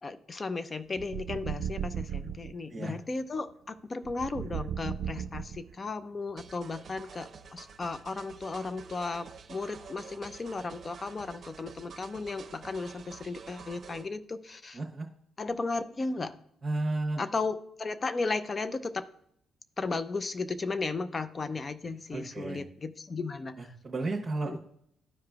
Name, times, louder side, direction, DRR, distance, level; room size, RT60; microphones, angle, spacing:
voice 1, 0.0-14.8 15.4-16.4 17.2-19.1 19.8-23.7 24.5-24.6, left 3 dB, 30° left, 13 dB, 0.5 m, -35 dB
sound 1, 0.9-2.5 4.0-5.9, right 8 dB, 75° right, 0.3 m, -36 dB
sound 2, 6.4-14.1, right 6 dB, 50° right, 0.7 m, -49 dB
voice 2, 14.7-15.1 16.6-17.2 22.1-22.6 23.6-24.6, right 2 dB, 30° right, -3 dB, 1.1 m, -33 dB
13.5 x 4.9 x 2.4 m, 0.72 s
cardioid pair, 90°, 0 cm